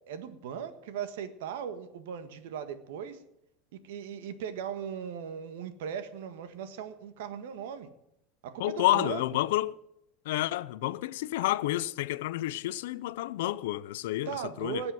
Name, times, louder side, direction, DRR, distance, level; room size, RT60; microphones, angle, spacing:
voice 1, 0.1-3.2 3.7-7.9 8.4-9.2 14.2-14.9, right 8 dB, 90° right, 1.6 m, -38 dB
voice 2, 8.6-9.8 10.3-14.8, left 15 dB, 85° left, 0.6 m, -30 dB
19.0 x 7.9 x 7.7 m
supercardioid pair, 180°, 0 cm